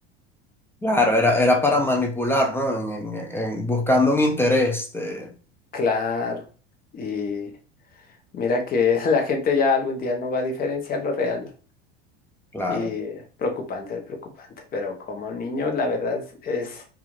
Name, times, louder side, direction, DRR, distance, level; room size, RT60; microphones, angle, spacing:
voice 1, 0.8-5.3 12.5-12.9, left 1 dB, 10° left, 0.3 m, -22 dB
voice 2, 5.7-6.4 6.9-7.5 8.3-11.5 12.7-16.8, left 4 dB, 30° left, 0.7 m, -25 dB
2.4 x 2.3 x 3.0 m
supercardioid pair, 120°, 29 cm